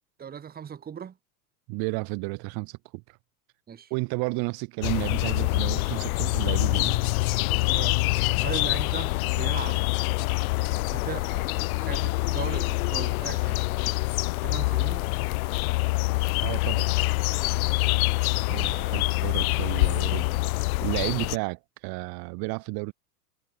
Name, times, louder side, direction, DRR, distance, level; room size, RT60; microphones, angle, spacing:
voice 1, 0.2-1.2 3.7-3.9 7.7-8.0 8.4-9.8 10.9-13.6 14.4-15.1 18.7-18.9, right 8 dB, 20° right, 1.4 m, -38 dB
voice 2, 1.7-3.2 3.9-7.0 16.4-16.9 18.5-22.9, right 30 dB, 45° right, 1.3 m, -32 dB
sound 1, 4.8-21.4, left 23 dB, 60° left, 0.8 m, -25 dB
hypercardioid pair, 105°, 49 cm